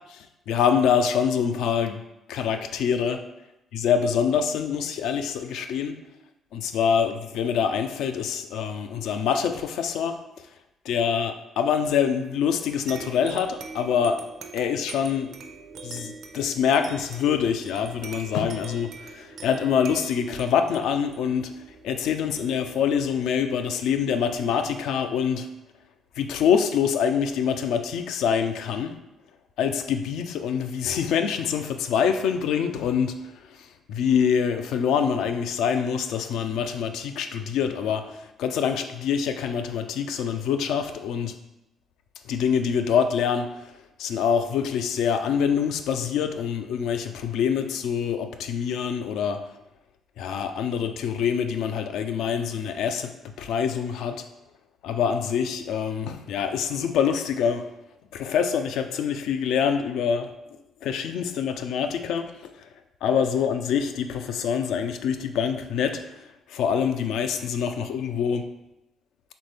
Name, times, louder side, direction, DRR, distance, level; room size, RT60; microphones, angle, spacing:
voice 1, 0.5-2.0 2.3-3.2 3.7-6.0 6.5-10.2 10.9-14.2 14.5-15.3 15.8-21.5 21.8-25.5 26.2-29.0 29.6-33.2 33.9-41.3 42.3-43.6 44.0-49.4 50.2-53.1 53.4-54.2 54.8-57.7 58.1-60.3 60.8-62.3 63.0-66.0 66.5-68.5, left 7 dB, 80° left, 7 dB, 0.4 m, -25 dB
sound 1, 12.9-24.0, right 4 dB, 70° right, 0.5 m, -43 dB
4.1 x 3.6 x 3.3 m, 0.91 s
supercardioid pair, 75°, 0 cm